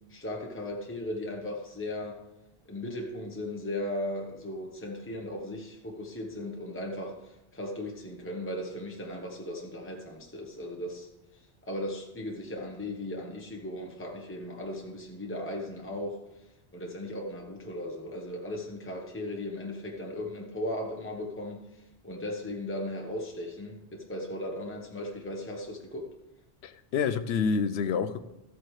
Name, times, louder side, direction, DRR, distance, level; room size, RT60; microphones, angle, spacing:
voice 1, 0.1-2.2 2.7-11.1 11.6-16.2 16.7-26.1, left 1 dB, 10° left, 0 dB, 1.1 m, -37 dB
voice 2, 26.6-28.2, left 6 dB, 75° left, 13 dB, 0.9 m, -28 dB
14.0 x 8.2 x 3.2 m, 0.94 s
omnidirectional pair, 1.1 m